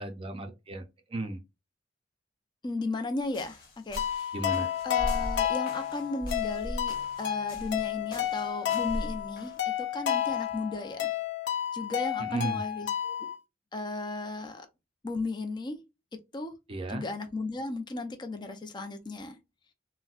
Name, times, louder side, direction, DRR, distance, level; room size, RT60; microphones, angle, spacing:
voice 1, 0.0-1.4 4.3-4.7 12.2-12.6 16.7-17.1, right 2 dB, 30° right, 0.4 m, -35 dB
voice 2, 2.6-4.3 4.8-11.1 11.7-13.2 13.7-14.7 15.0-15.8 16.3-16.5 16.9-19.4, left 2 dB, 25° left, 0.5 m, -35 dB
sound 1, 3.2-9.6, equal, 50° left, 1.2 m, -39 dB
sound 2, 4.0-13.4, left 10 dB, 65° left, 0.6 m, -31 dB
3.9 x 2.1 x 2.3 m
head